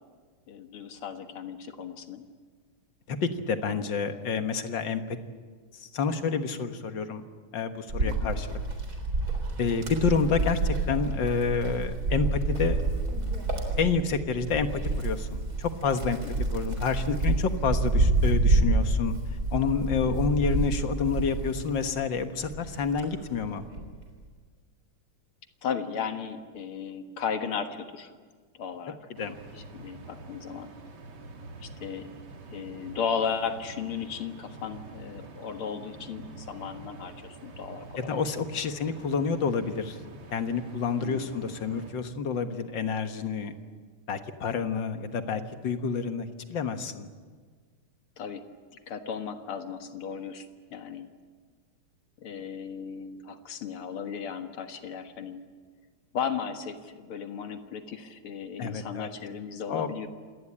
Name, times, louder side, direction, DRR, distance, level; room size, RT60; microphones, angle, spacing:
voice 1, 0.5-2.2 8.0-8.3 16.3-16.4 20.0-20.2 25.6-28.1 28.6-29.0 29.5-30.7 31.6-32.1 32.5-38.2 41.0-41.4 48.2-48.5 48.9-51.1 52.2-55.4 56.1-60.1, left 7 dB, 75° left, 7 dB, 2.5 m, -35 dB
voice 2, 3.1-5.2 5.7-7.2 7.5-8.6 9.6-12.8 13.8-16.2 16.5-19.1 19.5-23.7 29.2-29.4 38.0-40.0 40.3-43.5 44.1-47.1 58.6-59.1 59.7-59.9, left 5 dB, 60° left, 8 dB, 2.0 m, -29 dB
Wind, 7.9-22.0 22.4-23.9, right 2 dB, 45° right, 4.3 m, -28 dB
sound 1, 29.1-41.9, right 3 dB, 75° right, 3.1 m, -46 dB
27.0 x 18.5 x 8.8 m, 1.6 s
omnidirectional pair, 2.4 m